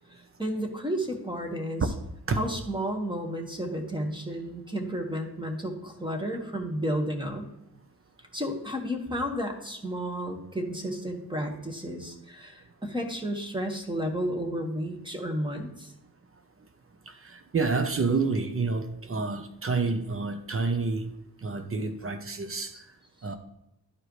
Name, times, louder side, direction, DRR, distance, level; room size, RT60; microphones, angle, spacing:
voice 1, 0.1-1.8 2.4-7.5 8.3-15.9, equal, 10° right, 3 dB, 1.5 m, -32 dB
voice 2, 17.1-21.1 21.4-22.7 23.2-23.4, right 4 dB, 35° right, 8 dB, 0.8 m, -28 dB
11.5 x 4.7 x 3.2 m, 0.88 s
cardioid pair, 95°, 38 cm